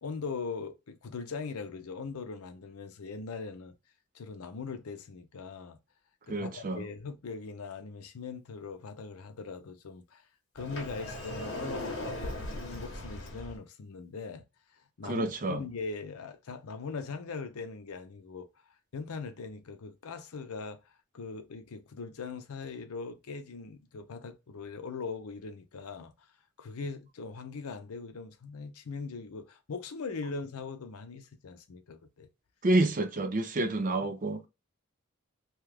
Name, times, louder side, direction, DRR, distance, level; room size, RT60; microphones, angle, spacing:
voice 1, 0.0-3.7 4.1-5.8 6.3-10.2 10.5-14.4 15.0-18.5 18.9-20.8 21.1-26.1 26.6-32.3, left 4 dB, 90° left, 0.6 m, -40 dB
voice 2, 6.3-6.8 15.0-15.6 32.6-34.4, right 2 dB, 35° right, 0.5 m, -28 dB
Sliding door, 10.6-13.6, left 1 dB, 55° left, 0.9 m, -38 dB
2.8 x 2.3 x 3.3 m
head